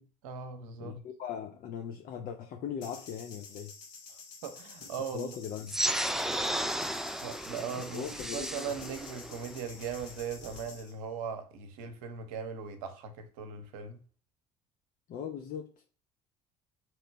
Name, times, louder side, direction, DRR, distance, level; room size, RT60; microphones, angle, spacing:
voice 1, 0.2-1.0 4.4-5.3 7.2-14.0, right 6 dB, 70° right, 0.7 m, -39 dB
voice 2, 0.8-3.7 5.1-5.8 7.9-8.7 15.1-15.7, left 8 dB, 45° left, 0.5 m, -39 dB
sound 1, 2.8-10.9, left 5 dB, 65° left, 1.0 m, -50 dB
sound 2, 5.7-10.7, right 1 dB, ahead, 0.3 m, -34 dB
3.0 x 2.9 x 4.5 m
figure-of-eight pair, 55°, 19 cm